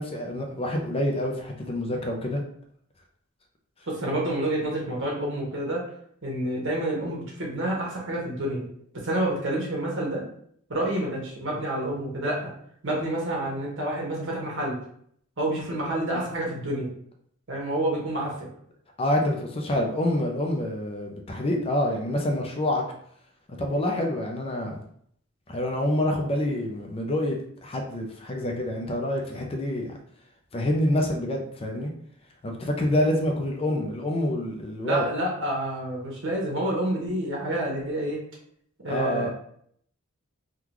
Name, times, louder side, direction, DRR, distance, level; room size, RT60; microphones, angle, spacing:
voice 1, 0.0-2.4 19.0-22.8 23.6-24.8 25.5-30.0 30.5-31.9 32.4-35.0 38.9-39.3, left 1 dB, 30° left, 1 dB, 0.5 m, -27 dB
voice 2, 3.9-5.8 6.2-8.6 9.0-10.2 10.7-12.5 12.8-14.8 15.4-16.9 17.5-18.3 34.8-38.2 38.8-39.3, right 1 dB, 65° right, -3 dB, 1.2 m, -28 dB
3.7 x 2.3 x 3.0 m, 0.65 s
head